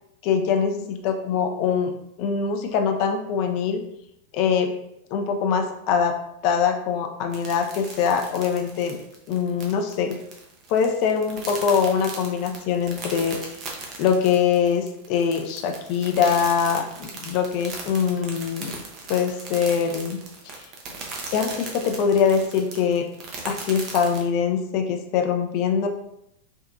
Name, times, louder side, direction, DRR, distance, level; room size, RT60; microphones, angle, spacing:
voice 1, 0.2-1.9 2.2-3.8 4.3-4.7 5.1-6.1 6.4-9.0 9.3-10.2 10.7-13.4 14.0-18.8 19.1-20.2 20.4-20.5 21.3-23.1 23.4-25.9, left 7 dB, 45° left, 5 dB, 0.4 m, -23 dB
sound 1, 7.3-24.2, right 3 dB, 35° right, 0.7 m, -38 dB
3.4 x 2.7 x 2.5 m, 0.79 s
figure-of-eight pair, 90°, 0 cm